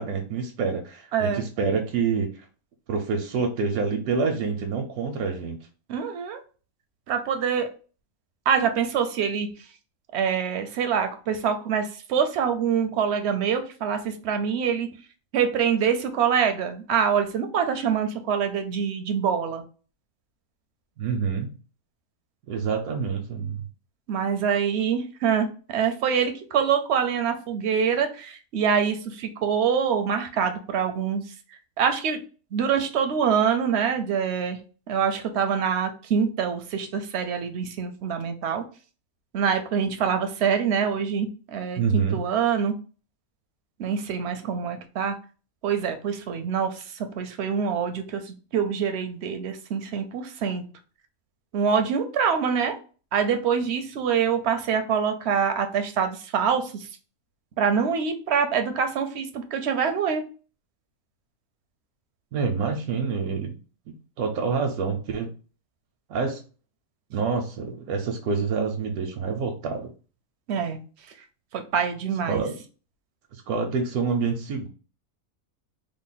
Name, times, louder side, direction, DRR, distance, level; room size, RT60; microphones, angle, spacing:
voice 1, 0.0-2.5 2.9-5.6 21.0-21.5 22.5-23.6 41.8-42.3 62.3-63.5 63.9-65.3 66.1-66.4 67.1-69.9 72.3-72.5 73.3-74.7, right 5 dB, 85° right, 3 dB, 1.1 m, -27 dB
voice 2, 1.1-1.4 5.9-6.4 7.1-7.7 8.5-9.5 10.1-14.9 15.3-19.6 24.1-31.2 31.8-32.2 32.5-34.6 34.9-38.6 39.3-42.7 43.8-45.2 45.6-46.8 47.2-50.6 51.5-52.7 53.1-56.9 57.6-60.2 70.5-70.8 71.5-72.4, right 7 dB, 65° right, 7 dB, 0.7 m, -25 dB
3.5 x 2.1 x 3.9 m, 0.37 s
omnidirectional pair, 1.5 m